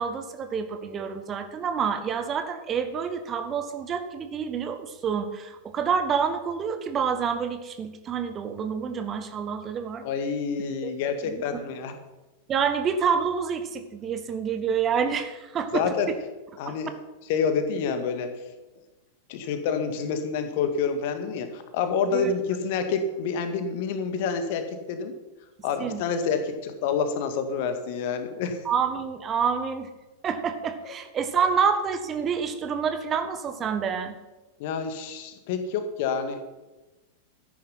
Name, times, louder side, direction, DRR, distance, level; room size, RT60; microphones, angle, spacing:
voice 1, 0.0-10.0 10.8-10.9 11.2-11.6 12.5-16.2 16.6-16.8 22.1-22.3 25.8-26.0 28.6-29.9 30.2-34.1, right 6 dB, 25° right, 9 dB, 1.5 m, -28 dB
voice 2, 10.0-11.9 15.7-16.1 16.6-16.9 17.3-18.3 19.3-25.1 25.6-28.6 34.6-36.4, left 6 dB, 50° left, 8 dB, 1.9 m, -28 dB
13.5 x 10.5 x 5.7 m, 1.1 s
figure-of-eight pair, 90°, 0 cm